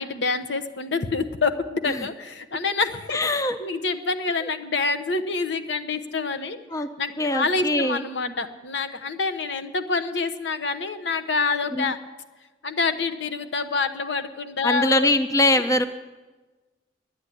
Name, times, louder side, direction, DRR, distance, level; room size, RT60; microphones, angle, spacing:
voice 1, 0.0-3.2 3.6-6.6 7.0-12.0 12.6-15.1, left 4 dB, 70° left, 9 dB, 0.9 m, -27 dB
voice 2, 3.1-3.6 4.4-4.5 6.7-6.9 7.2-8.0 11.7-11.9 14.6-15.9, left 1 dB, 20° left, 11 dB, 0.4 m, -22 dB
10.5 x 9.8 x 9.7 m, 1.2 s
head